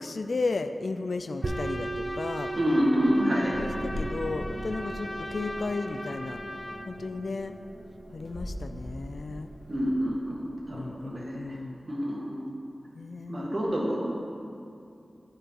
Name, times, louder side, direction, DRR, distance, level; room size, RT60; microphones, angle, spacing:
voice 1, 0.0-2.5 3.2-6.4 6.9-7.6 8.1-9.5 10.7-11.8 12.9-13.7, left 3 dB, 70° left, 9 dB, 0.3 m, -34 dB
Trumpet, 1.4-6.9, left 1 dB, 30° left, 0.7 m, -39 dB
sound 1, 1.4-10.8, right 3 dB, 75° right, 0.5 m, -40 dB
voice 2, 2.6-3.5 9.7-11.6 11.9-12.5 13.3-14.0, equal, 45° right, -4 dB, 1.9 m, -27 dB
sound 2, 3.4-11.4, equal, ahead, 1.5 m, -41 dB
11.5 x 4.9 x 4.5 m, 2.6 s
wide cardioid pair, 75°, 0 cm